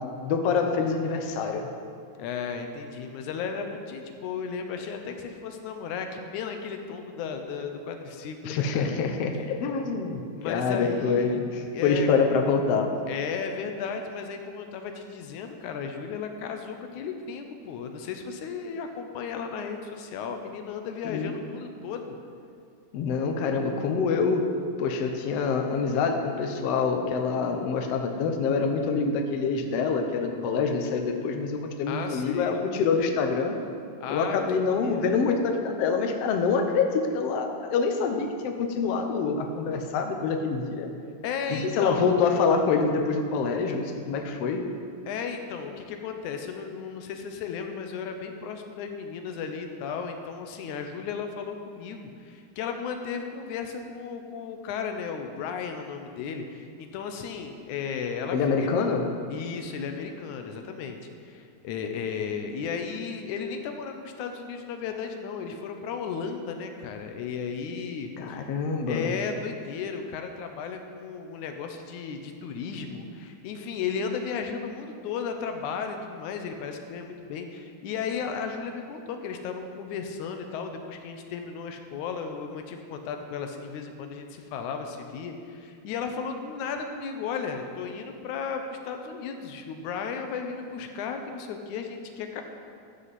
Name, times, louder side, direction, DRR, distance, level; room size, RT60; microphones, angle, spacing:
voice 1, 0.0-1.7 8.4-12.9 21.0-21.4 22.9-33.5 34.1-40.9 41.5-44.6 58.3-59.1 68.2-69.1, left 5 dB, 70° left, 4 dB, 1.6 m, -26 dB
voice 2, 2.2-8.9 10.3-11.3 11.7-12.1 13.1-22.2 31.9-32.6 34.0-34.4 34.8-35.1 41.2-42.2 45.1-58.7 59.3-61.0 61.2-68.5 68.9-92.4, left 6 dB, 85° left, 5 dB, 2.2 m, -35 dB
13.0 x 7.7 x 4.1 m, 2.3 s
omnidirectional pair, 3.4 m